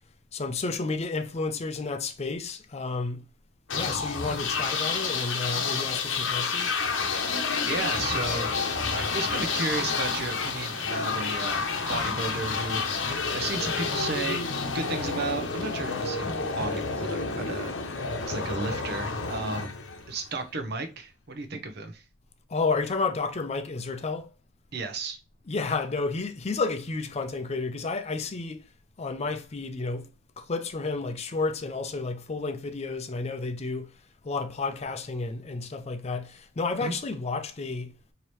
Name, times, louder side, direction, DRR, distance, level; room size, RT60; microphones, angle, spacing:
voice 1, 0.3-3.2 3.7-6.7 22.5-24.3 25.4-28.6 29.0-30.1 30.4-33.9 34.2-37.9, left 3 dB, 35° left, 0.5 m, -31 dB
sound 1, 3.7-20.4, left 4 dB, 90° left, 0.8 m, -29 dB
voice 2, 7.6-16.3 16.5-17.7 18.3-19.7 20.1-22.0 24.7-25.2 36.8-36.9, right 3 dB, 60° right, 0.7 m, -34 dB
4.6 x 2.8 x 3.1 m
head